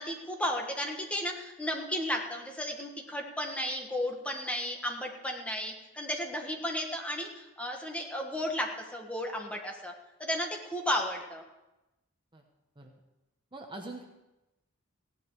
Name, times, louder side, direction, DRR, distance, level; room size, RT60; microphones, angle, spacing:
voice 1, 0.0-9.9 10.2-11.4, left 1 dB, 5° left, 1 dB, 1.5 m, -34 dB
voice 2, 13.5-14.0, right 2 dB, 25° right, 2 dB, 1.1 m, -43 dB
16.0 x 11.0 x 4.8 m, 0.98 s
head